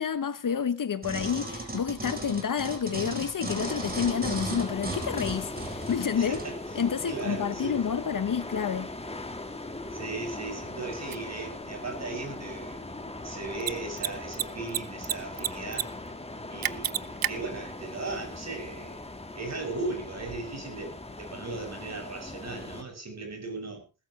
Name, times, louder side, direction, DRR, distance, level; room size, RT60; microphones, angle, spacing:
voice 1, 0.0-6.4 6.7-8.9, left 7 dB, 55° left, 1.0 m, -29 dB
sound 1, 1.0-6.5 7.1-7.2, right 2 dB, 25° right, 4.1 m, -36 dB
sound 2, 3.4-22.8, left 2 dB, 15° left, 1.8 m, -39 dB
voice 2, 6.2-6.5 7.1-7.8 9.9-12.8 13.2-15.9 16.5-19.0 19.3-23.8, right 3 dB, 40° right, 7.2 m, -37 dB
Mechanisms, 11.1-11.2 13.5-13.7 14.0-14.1 14.3-15.1 15.4-15.8 16.1-16.2 16.6-17.3, right 10 dB, 60° right, 0.7 m, -28 dB
20.0 x 13.0 x 3.2 m
wide cardioid pair, 105°, 39 cm